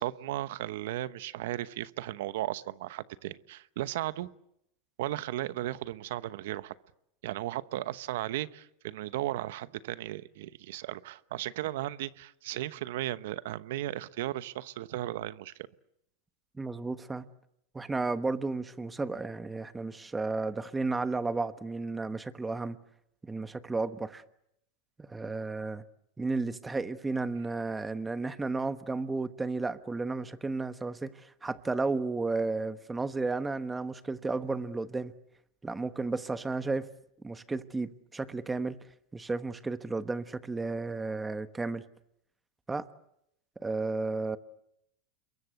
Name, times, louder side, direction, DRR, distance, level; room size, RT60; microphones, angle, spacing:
voice 1, 0.0-4.3 5.0-6.7 7.2-15.5, right 14 dB, 70° right, 1.0 m, -35 dB
voice 2, 16.6-17.2 17.7-22.8 23.2-24.2 25.0-25.8 26.2-35.1 35.6-36.9 37.2-38.8 39.1-41.8 42.7-42.9 43.6-44.4, right 3 dB, 10° right, 1.2 m, -33 dB
27.5 x 22.5 x 8.2 m
supercardioid pair, 140°, 0 cm